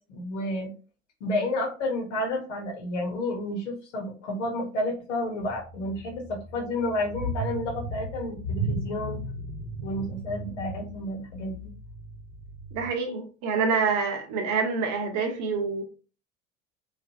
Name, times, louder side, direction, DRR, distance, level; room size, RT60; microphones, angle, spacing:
voice 1, 0.1-0.7 1.2-9.2 9.8-11.7, left 1 dB, 70° left, 1.1 m, -31 dB
sound 1, 5.4-12.9, right 1 dB, 80° right, 0.8 m, -36 dB
voice 2, 12.7-15.8, right 5 dB, 50° right, 1.0 m, -27 dB
3.1 x 2.5 x 2.7 m
figure-of-eight pair, 65°, 37 cm